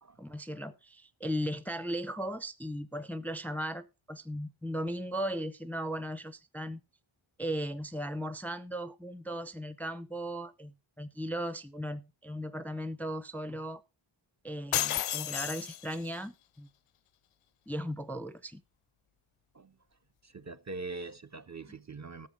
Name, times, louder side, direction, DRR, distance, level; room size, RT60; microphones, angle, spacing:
voice 1, 0.2-6.8 7.4-13.8 14.4-16.7 17.7-18.6, equal, 5° left, 0.6 m, -37 dB
sound 1, 14.7-16.2, left 12 dB, 80° left, 0.6 m, -32 dB
voice 2, 20.2-22.3, right 3 dB, 35° right, 0.7 m, -42 dB
13.0 x 7.0 x 4.9 m
wide cardioid pair, 105°, 50 cm